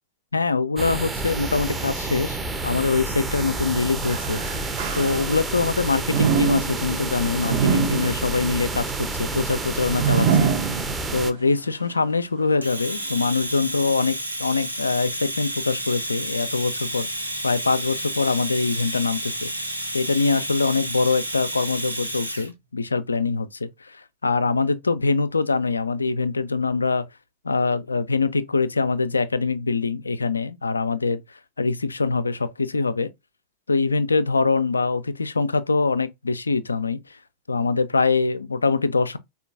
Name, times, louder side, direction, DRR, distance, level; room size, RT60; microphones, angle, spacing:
voice 1, 0.3-4.4 5.0-10.5 11.1-19.7 19.9-27.1 27.4-31.2 31.6-33.1 33.7-37.0 37.5-39.2, left 4 dB, 80° left, 0.3 m, -23 dB
sound 1, 0.8-11.3, right 3 dB, 15° right, 0.6 m, -29 dB
sound 2, 4.0-5.6 6.1-11.3 11.8-11.9 12.8-12.9, right 6 dB, 50° right, 0.7 m, -25 dB
Domestic sounds home sounds, 12.6-22.5, right 1 dB, 90° right, 0.7 m, -31 dB
4.4 x 2.4 x 2.4 m
figure-of-eight pair, 90°, 0 cm